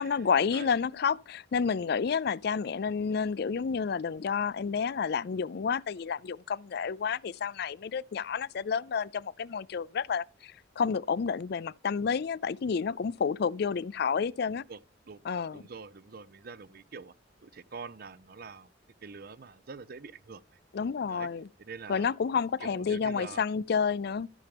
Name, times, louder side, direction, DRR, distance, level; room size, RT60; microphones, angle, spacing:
voice 1, 0.0-14.6 15.2-15.6 20.7-21.5 21.9-24.3, left 6 dB, 55° left, 0.4 m, -30 dB
voice 2, 15.5-17.1 17.4-18.7 19.0-20.4 21.1-21.3 21.6-22.1 22.6-23.4, right 5 dB, 55° right, 0.6 m, -45 dB
13.5 x 7.0 x 3.5 m
head